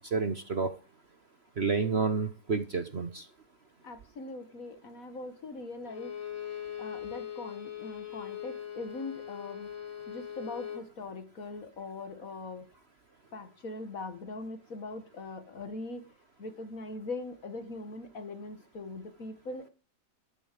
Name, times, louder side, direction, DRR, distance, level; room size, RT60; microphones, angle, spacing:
voice 1, 0.1-0.7 1.6-3.3, right 4 dB, 45° right, 9 dB, 1.0 m, -29 dB
voice 2, 3.8-6.1 6.8-9.7 10.1-12.7 13.3-16.0 16.4-19.7, left 3 dB, 50° left, 8 dB, 1.9 m, -41 dB
Bowed string instrument, 5.8-10.9, left 9 dB, 85° left, 2.8 m, -41 dB
12.5 x 6.9 x 9.1 m, 0.36 s
omnidirectional pair, 1.9 m